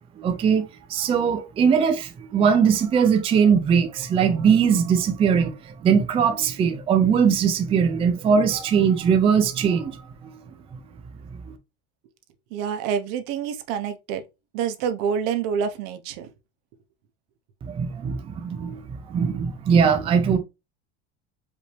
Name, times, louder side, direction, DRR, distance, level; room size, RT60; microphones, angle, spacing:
voice 1, 0.2-10.4 11.5-11.6 17.6-20.4, right 6 dB, 20° right, 0.4 m, -21 dB
voice 2, 12.5-14.2 14.5-16.3, right 7 dB, 70° right, 1.0 m, -27 dB
5.1 x 2.7 x 3.3 m
cardioid pair, 165°, 31 cm